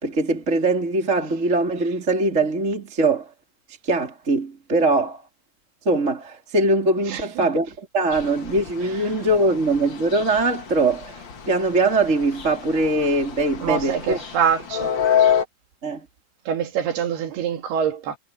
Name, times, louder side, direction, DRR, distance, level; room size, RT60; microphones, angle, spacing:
voice 1, 0.0-3.3 3.8-5.2 5.9-14.2 15.8-16.0, right 2 dB, 20° right, 3.8 m, -22 dB
voice 2, 7.1-7.5 13.6-14.9 16.5-18.2, right 8 dB, 75° right, 4.0 m, -25 dB
sound 1, 8.1-15.4, left 8 dB, 50° left, 1.4 m, -28 dB
omnidirectional pair, 4.7 m